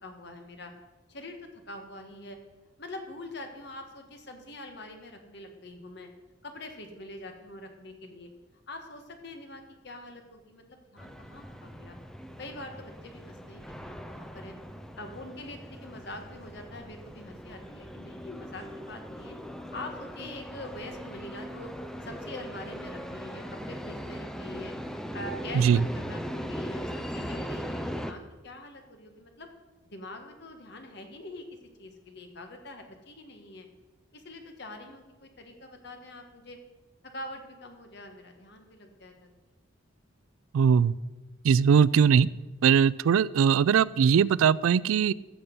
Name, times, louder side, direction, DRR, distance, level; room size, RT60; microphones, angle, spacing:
voice 1, 0.0-0.7 1.1-2.4 2.8-6.1 6.4-8.3 8.7-12.0 12.4-14.5 15.0-19.4 19.7-21.7 22.0-29.5 29.9-31.4 31.8-33.7 34.1-36.6 37.0-39.3, left 1 dB, 55° left, 5 dB, 1.5 m, -44 dB
sound 1, 11.0-28.1, equal, 5° left, 0.5 m, -39 dB
voice 2, 40.5-40.9 41.4-42.3 42.6-45.1, right 7 dB, 85° right, 20 dB, 0.3 m, -21 dB
14.0 x 7.0 x 5.3 m, 1.2 s
head